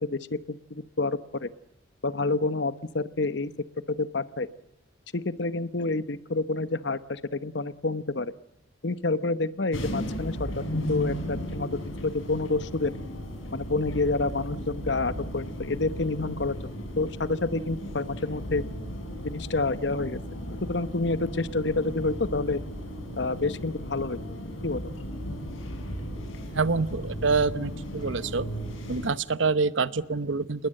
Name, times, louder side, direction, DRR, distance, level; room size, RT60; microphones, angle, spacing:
voice 1, 0.0-1.5 2.0-3.5 3.9-4.5 5.1-8.3 8.8-12.9 13.5-16.5 17.0-18.6 19.2-20.2 20.6-22.6 23.2-24.2 24.6-24.9, left 3 dB, 60° left, 15 dB, 1.0 m, -28 dB
sound 1, 9.7-29.1, equal, 90° left, 5.9 m, -35 dB
voice 2, 26.5-28.5 28.9-30.7, right 4 dB, 70° right, 16 dB, 0.9 m, -26 dB
27.5 x 21.0 x 7.7 m, 0.82 s
head